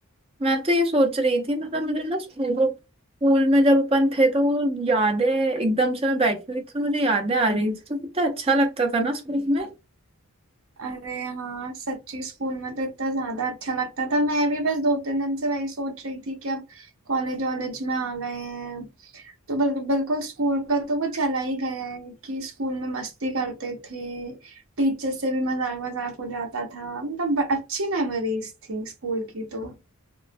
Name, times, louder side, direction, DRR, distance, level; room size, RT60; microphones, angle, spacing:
voice 1, 0.4-2.7 3.2-9.7, right 1 dB, 25° right, 0.6 m, -22 dB
voice 2, 10.8-18.9 19.1-29.8, right 1 dB, 60° right, 0.8 m, -28 dB
3.1 x 2.1 x 2.6 m
head